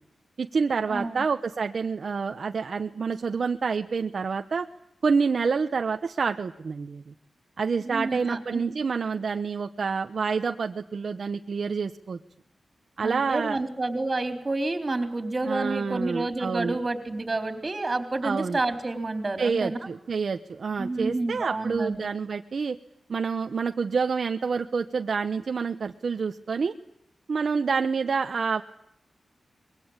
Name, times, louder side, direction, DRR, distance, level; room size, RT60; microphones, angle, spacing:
voice 1, 0.4-4.7 5.0-7.1 7.6-12.2 13.0-13.6 15.4-16.8 18.2-18.6 19.4-22.8 23.1-26.7 27.3-28.6, right 5 dB, 55° right, 7 dB, 0.9 m, -28 dB
voice 2, 0.9-1.2 7.8-8.7 13.0-19.8 20.7-22.1, right 2 dB, 25° right, 9 dB, 3.9 m, -29 dB
24.5 x 22.0 x 8.9 m, 0.78 s
wide cardioid pair, 160°, 0 cm